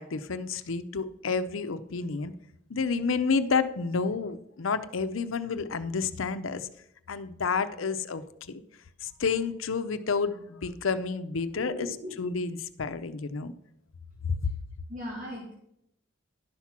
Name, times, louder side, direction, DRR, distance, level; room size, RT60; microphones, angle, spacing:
voice 1, 0.0-2.3 2.7-6.7 7.1-8.2 9.0-11.9 12.2-12.5 12.8-13.5 14.2-14.4, left 5 dB, 90° left, 12 dB, 0.6 m, -30 dB
voice 2, 11.5-12.3 14.4-14.5 14.9-15.5, equal, 45° right, -3 dB, 1.8 m, -39 dB
11.0 x 5.8 x 6.0 m, 0.77 s
head